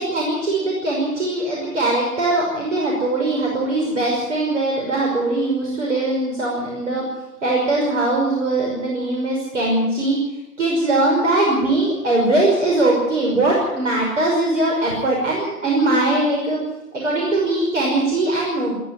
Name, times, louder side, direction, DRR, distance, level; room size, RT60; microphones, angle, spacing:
voice 1, 0.0-7.0 7.4-10.1 10.6-16.6 16.9-18.7, right 2 dB, 50° right, -2 dB, 5.9 m, -20 dB
21.0 x 13.5 x 9.8 m, 1.0 s
figure-of-eight pair, 140°, 47 cm